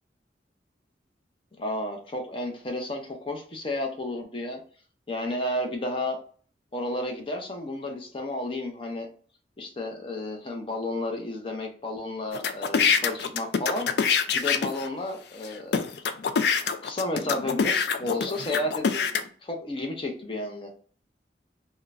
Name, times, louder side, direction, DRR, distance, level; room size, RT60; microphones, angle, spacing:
voice 1, 1.6-4.6 5.1-6.2 6.7-9.1 9.6-13.9 14.3-15.9 16.8-19.1 19.4-20.7, left 1 dB, 30° left, 2 dB, 0.6 m, -32 dB
sound 1, 12.3-14.9 15.4-15.5 15.7-19.2, left 6 dB, 65° left, 0.4 m, -25 dB
3.7 x 2.2 x 2.4 m, 0.43 s
head